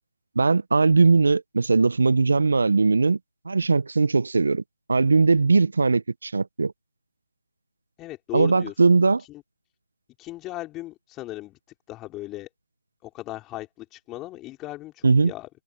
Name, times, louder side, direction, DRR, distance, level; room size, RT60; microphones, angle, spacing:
voice 1, 0.4-3.2 3.4-4.6 4.9-6.7 8.3-9.2 15.0-15.3, right 4 dB, 65° right, 1.1 m, -20 dB
voice 2, 8.0-8.7 9.2-9.4 10.2-11.6 11.9-12.5 13.0-15.5, left 17 dB, 15° left, 4.8 m, -37 dB
figure-of-eight pair, 155°, 0 cm